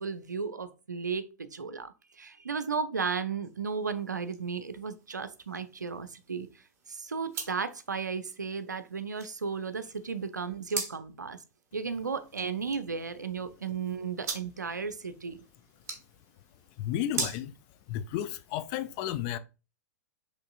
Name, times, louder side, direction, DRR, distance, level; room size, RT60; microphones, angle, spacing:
voice 1, 0.0-6.5 6.9-11.4 11.7-15.4, right 5 dB, 75° right, 0.5 m, -34 dB
sound 1, 3.4-18.6, right 5 dB, 25° right, 1.1 m, -44 dB
voice 2, 16.8-17.5 17.9-19.4, left 11 dB, 35° left, 0.4 m, -32 dB
5.3 x 3.1 x 2.5 m
figure-of-eight pair, 100°, 9 cm